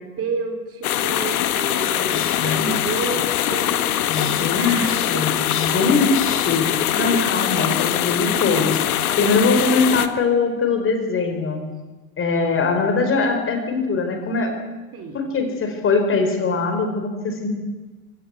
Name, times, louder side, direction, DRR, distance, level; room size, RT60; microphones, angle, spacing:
voice 1, 0.0-3.8 4.2-5.5 6.0-7.3 14.9-15.2, right 4 dB, 30° right, 6 dB, 4.6 m, -31 dB
sound 1, 0.8-10.1, left 11 dB, 75° left, 1.6 m, -22 dB
voice 2, 2.1-2.7 4.1-6.7 7.0-8.8 9.2-11.6 12.2-14.6 15.1-17.5, left 4 dB, 30° left, 6 dB, 4.6 m, -22 dB
24.5 x 16.5 x 8.3 m, 1.2 s
hypercardioid pair, 100°, 44 cm